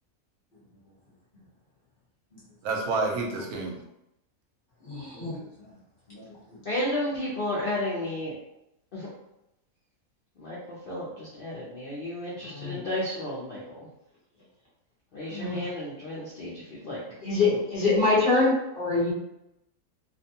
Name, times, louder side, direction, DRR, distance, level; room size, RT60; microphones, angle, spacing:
voice 1, 2.6-3.7, right 3 dB, 80° right, 1 dB, 1.1 m, -28 dB
voice 2, 4.8-5.7 6.1-6.2 6.5-6.6 12.4-12.8 15.3-15.7 17.2-19.1, left 3 dB, 40° left, -8 dB, 1.1 m, -25 dB
voice 3, 6.7-8.3 8.9-9.0 10.4-10.6 10.9-13.8 15.1-16.5 16.8-17.0, left 1 dB, 55° left, -7 dB, 0.6 m, -32 dB
2.5 x 2.2 x 2.7 m, 0.85 s
omnidirectional pair, 1.5 m